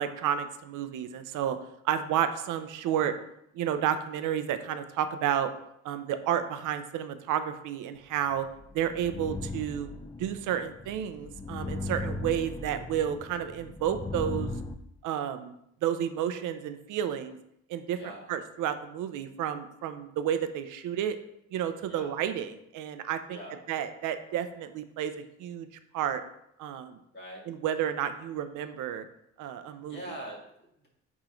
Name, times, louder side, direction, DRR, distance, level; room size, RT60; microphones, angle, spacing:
voice 1, 0.0-1.6 1.8-3.1 3.5-5.5 5.8-8.4 8.7-9.9 10.2-14.5 15.0-15.5 15.8-17.4 17.7-18.0 18.3-21.2 21.5-23.4 23.7-25.7 25.9-26.2 26.6-27.0 27.5-29.0 29.4-30.0, right 9 dB, 85° right, 9 dB, 0.6 m, -31 dB
sound 1, 8.3-14.7, left 2 dB, 15° left, 0.4 m, -38 dB
voice 2, 17.9-18.3 21.9-22.1 23.3-23.6 27.1-27.4 29.9-30.9, right 1 dB, 35° left, -2 dB, 2.3 m, -43 dB
8.9 x 3.7 x 3.1 m, 0.76 s
cardioid pair, 90°, 30 cm